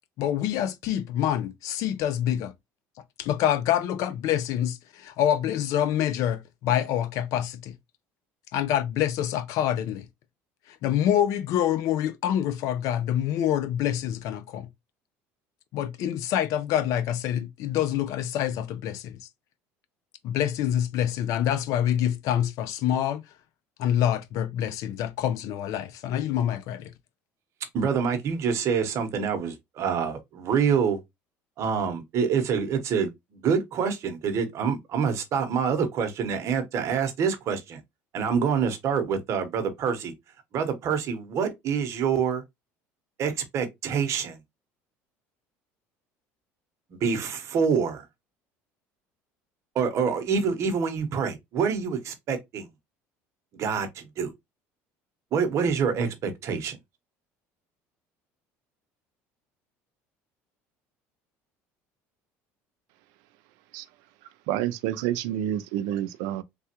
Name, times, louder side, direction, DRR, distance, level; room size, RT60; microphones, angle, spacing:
voice 1, 0.2-2.5 3.2-7.7 8.5-10.1 10.8-14.7 15.7-19.2 20.2-23.2 23.8-26.9, left 10 dB, 65° left, 0.5 m, -26 dB
voice 2, 27.7-31.0 31.6-37.8 38.1-40.1 40.5-42.4 43.2-44.4 47.0-48.1 49.7-52.7 53.5-54.3 55.3-56.8, right 6 dB, 50° right, 0.9 m, -26 dB
voice 3, 64.5-66.4, right 12 dB, 80° right, 0.3 m, -28 dB
3.3 x 2.3 x 2.8 m
supercardioid pair, 115°, 6 cm